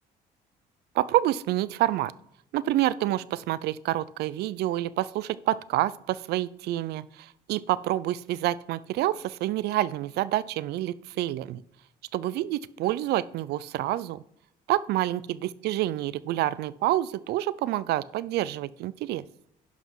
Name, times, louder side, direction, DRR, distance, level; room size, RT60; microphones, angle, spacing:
voice 1, 0.9-2.1 2.5-11.6 12.1-14.2 14.7-19.2, right 14 dB, 75° right, 19 dB, 0.4 m, -28 dB
10.5 x 6.0 x 4.7 m, 0.75 s
cardioid pair, 110°, 17 cm